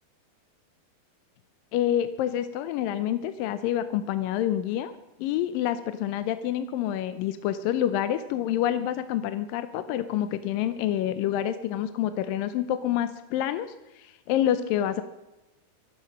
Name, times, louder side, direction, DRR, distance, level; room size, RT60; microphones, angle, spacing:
voice 1, 1.7-4.9 5.2-15.0, left 11 dB, 80° left, 12 dB, 2.2 m, -27 dB
24.5 x 8.2 x 6.4 m, 1.0 s
omnidirectional pair, 4.4 m